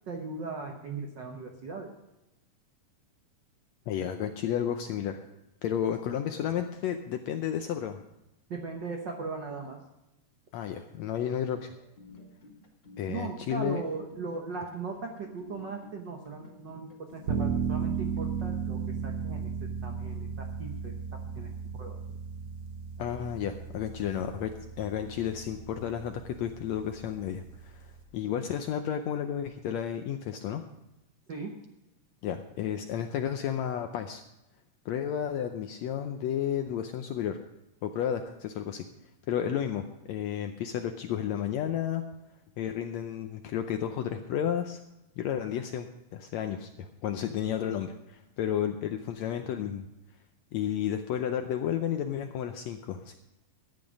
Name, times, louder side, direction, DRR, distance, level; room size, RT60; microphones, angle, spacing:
voice 1, 0.1-1.9 8.5-9.8 13.1-19.5 19.8-22.0 31.3-31.5, right 4 dB, 75° right, 3 dB, 1.0 m, -38 dB
voice 2, 3.9-5.2 5.6-8.0 10.5-11.7 13.0-13.8 23.0-30.6 32.2-34.2 34.8-37.4 37.8-38.8 39.3-42.0 42.6-44.8 45.2-45.9 46.1-49.9 50.5-53.2, left 9 dB, 75° left, 7 dB, 1.6 m, -32 dB
sound 1, 11.7-18.6, left 2 dB, 25° left, 1.5 m, -52 dB
sound 2, 17.3-28.0, right 6 dB, 55° right, 1.7 m, -35 dB
14.0 x 9.8 x 5.2 m, 0.94 s
omnidirectional pair, 3.7 m